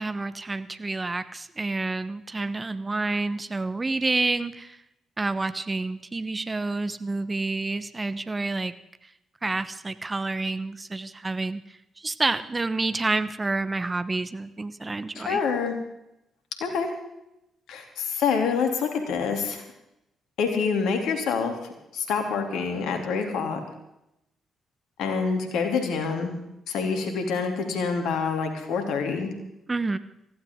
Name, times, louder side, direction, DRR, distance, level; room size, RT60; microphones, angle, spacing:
voice 1, 0.0-4.8 5.2-8.7 9.4-11.6 12.0-15.4 29.7-30.0, right 3 dB, 30° right, 13 dB, 1.1 m, -28 dB
voice 2, 15.1-15.7 16.6-16.9 17.7-19.6 20.4-21.5 21.9-23.6 25.0-26.4 26.7-29.3, left 5 dB, 75° left, 4 dB, 2.9 m, -26 dB
20.5 x 15.5 x 3.7 m, 0.84 s
hypercardioid pair, 45°, 0 cm